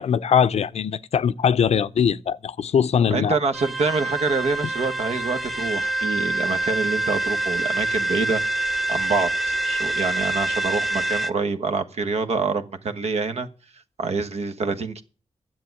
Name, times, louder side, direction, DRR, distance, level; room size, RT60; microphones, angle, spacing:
voice 1, 0.0-3.4, left 7 dB, 75° left, 0.6 m, -21 dB
voice 2, 3.1-13.5 14.0-15.0, right 4 dB, 75° right, 1.3 m, -26 dB
sound 1, 3.5-11.3, right 2 dB, ahead, 0.7 m, -26 dB
10.5 x 7.6 x 9.4 m
wide cardioid pair, 100°, 11 cm